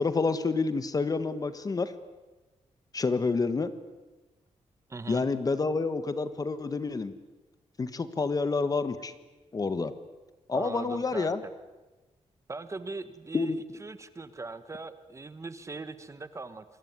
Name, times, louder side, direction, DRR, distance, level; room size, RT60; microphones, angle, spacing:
voice 1, 0.0-1.9 2.9-3.7 5.1-7.1 7.8-9.1 9.5-9.9 10.5-11.4 13.3-13.6, left 4 dB, 30° left, 12 dB, 1.4 m, -28 dB
voice 2, 4.9-5.2 10.5-11.5 12.5-13.5 13.8-16.8, right 3 dB, 25° right, 12 dB, 1.3 m, -40 dB
27.5 x 22.5 x 9.6 m, 1.2 s
wide cardioid pair, 165°, 12 cm